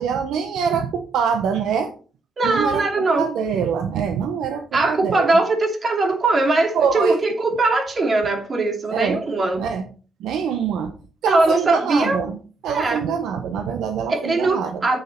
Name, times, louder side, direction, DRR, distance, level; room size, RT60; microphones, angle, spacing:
voice 1, 0.0-1.9 2.4-5.4 6.7-7.2 8.9-9.2 9.5-9.9 10.2-10.9 11.2-12.4 12.6-14.8, right 6 dB, 80° right, 6 dB, 1.1 m, -24 dB
voice 2, 2.4-3.3 4.7-9.6 11.3-12.2 12.7-13.0 14.1-15.0, right 2 dB, 35° right, 4 dB, 2.6 m, -20 dB
8.4 x 6.7 x 4.4 m, 0.37 s
cardioid pair, 90°, 0 cm